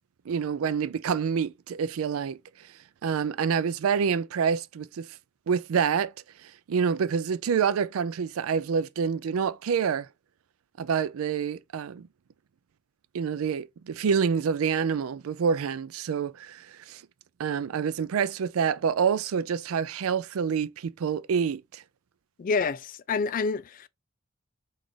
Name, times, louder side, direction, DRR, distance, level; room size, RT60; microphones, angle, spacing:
voice 1, 0.3-2.4 3.0-5.1 5.5-6.1 6.7-10.1 10.8-12.0 13.1-17.0 17.4-21.8, right 6 dB, 90° right, 0.4 m, -27 dB
voice 2, 22.4-23.9, left 4 dB, 40° left, 0.3 m, -28 dB
5.9 x 2.5 x 3.2 m
head